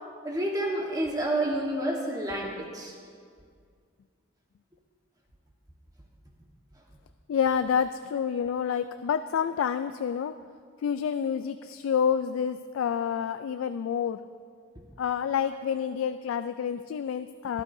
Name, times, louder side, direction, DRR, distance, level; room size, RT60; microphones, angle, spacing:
voice 1, 0.2-2.9, right 1 dB, 20° right, -1 dB, 1.3 m, -29 dB
voice 2, 7.3-10.4 10.8-14.2 15.0-17.6, left 7 dB, 90° left, 11 dB, 0.3 m, -28 dB
17.5 x 11.5 x 2.6 m, 2.1 s
head